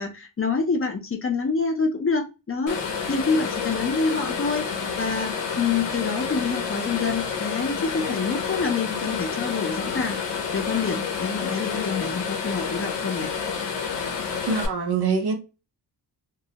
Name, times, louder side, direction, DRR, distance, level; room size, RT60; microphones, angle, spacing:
voice 1, 0.0-2.8 3.1-4.7 5.0-10.2 10.5-13.3, left 4 dB, 35° left, 0.4 m, -26 dB
sound 1, 2.7-14.7, left 6 dB, 90° left, 0.6 m, -29 dB
voice 2, 14.5-15.3, right 5 dB, 65° right, 0.7 m, -24 dB
2.2 x 2.0 x 2.7 m
wide cardioid pair, 125°, 42 cm